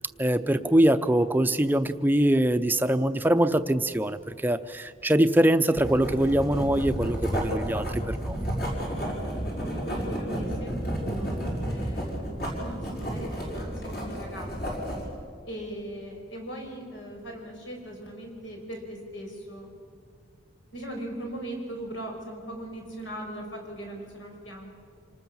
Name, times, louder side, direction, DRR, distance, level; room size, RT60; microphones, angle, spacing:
voice 1, 0.2-8.4, right 1 dB, 10° right, 9 dB, 0.6 m, -23 dB
Writing, 5.8-15.1, equal, 55° left, 5.7 m, -31 dB
voice 2, 9.7-14.8 15.4-19.7 20.7-24.8, right 1 dB, 80° left, 1 dB, 5.7 m, -39 dB
26.5 x 19.5 x 7.2 m, 2.3 s
head